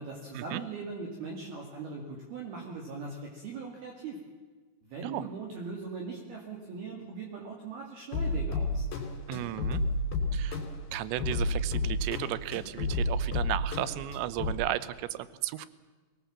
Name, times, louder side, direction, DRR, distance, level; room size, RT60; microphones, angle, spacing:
voice 1, 0.0-4.2 4.8-8.9, right 4 dB, 55° right, 0 dB, 3.7 m, -40 dB
sound 1, 8.1-14.5, left 2 dB, 50° left, 5.0 m, -31 dB
voice 2, 9.3-9.8 10.3-10.6 10.9-15.7, right 14 dB, 75° right, 16 dB, 2.7 m, -34 dB
23.5 x 19.0 x 7.4 m, 1.4 s
omnidirectional pair, 5.9 m